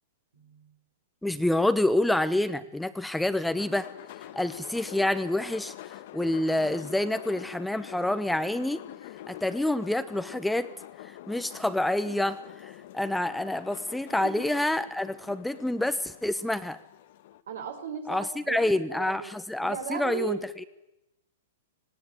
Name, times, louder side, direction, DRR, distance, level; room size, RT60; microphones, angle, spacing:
voice 1, 0.3-0.7 14.1-14.2 17.5-19.3 19.6-20.4, right 6 dB, 80° right, 5 dB, 5.1 m, -36 dB
voice 2, 1.2-3.9 4.4-8.8 9.3-10.7 11.0-16.8 18.1-20.6, left 1 dB, 5° left, 12 dB, 0.9 m, -28 dB
sound 1, 3.5-17.4, left 13 dB, 60° left, 1.1 m, -45 dB
18.5 x 17.5 x 9.2 m, 0.91 s
hypercardioid pair, 125°, 0 cm